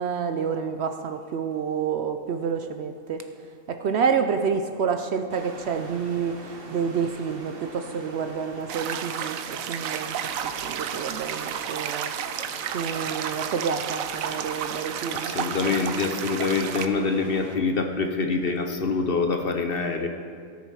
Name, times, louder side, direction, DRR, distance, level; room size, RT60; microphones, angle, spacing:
voice 1, 0.0-3.2 3.7-10.1 10.6-12.1 12.7-15.3, right 6 dB, 65° right, 7 dB, 0.7 m, -28 dB
sound 1, 5.3-17.6, right 2 dB, 45° right, 1.2 m, -43 dB
sound 2, 8.7-16.9, right 9 dB, 85° right, 1.0 m, -32 dB
voice 2, 15.1-20.1, left 4 dB, 50° left, 5 dB, 0.9 m, -25 dB
17.0 x 7.1 x 4.7 m, 2.2 s
omnidirectional pair, 1.4 m